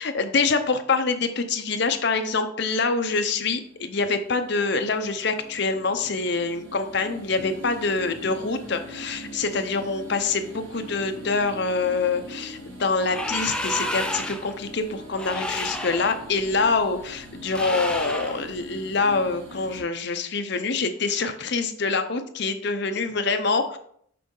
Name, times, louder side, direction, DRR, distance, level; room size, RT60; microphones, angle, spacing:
voice 1, 0.0-23.8, left 4 dB, 55° left, 7 dB, 0.7 m, -25 dB
sound 1, 2.8-19.8, right 1 dB, 70° right, 1.7 m, -43 dB
sound 2, 13.1-14.5 15.1-16.2 17.5-18.4, left 1 dB, 5° left, 0.4 m, -30 dB
6.6 x 5.4 x 3.8 m, 0.64 s
head